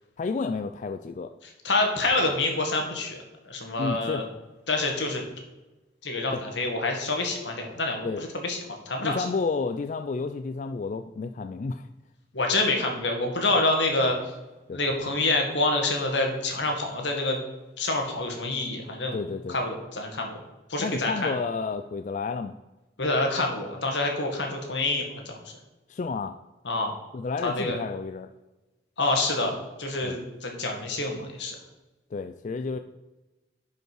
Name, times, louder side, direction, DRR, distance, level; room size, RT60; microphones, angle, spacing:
voice 1, 0.2-1.3 3.8-4.3 6.3-6.5 8.0-8.2 9.0-11.9 14.7-14.8 19.1-19.6 20.8-22.6 25.9-26.3 27.1-28.3 30.0-30.2 32.1-32.8, left 4 dB, 45° left, 8 dB, 0.3 m, -31 dB
voice 2, 1.6-3.2 3.5-4.2 4.7-5.2 6.0-8.6 8.9-9.2 12.3-14.2 14.7-17.4 17.8-19.2 19.5-20.3 20.7-21.3 23.0-25.4 26.7-27.0 27.4-27.8 29.0-29.5 29.8-31.6, left 2 dB, 85° left, 2 dB, 1.9 m, -27 dB
11.0 x 5.3 x 4.7 m, 1.1 s
head